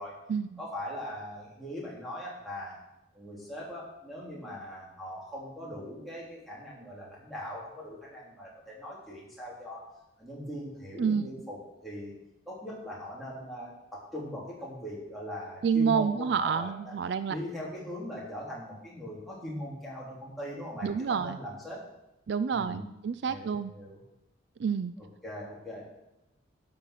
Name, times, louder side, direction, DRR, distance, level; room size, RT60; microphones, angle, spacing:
voice 1, 0.6-2.8 3.1-9.9 10.2-12.1 12.4-16.9 17.3-21.9 22.5-22.9 23.3-24.0 25.0-25.8, left 1 dB, ahead, -7 dB, 3.4 m, -40 dB
voice 2, 15.6-17.4 20.8-21.4 22.3-23.7 24.6-24.9, right 6 dB, 60° right, 13 dB, 0.3 m, -28 dB
12.0 x 5.7 x 6.6 m, 0.90 s
head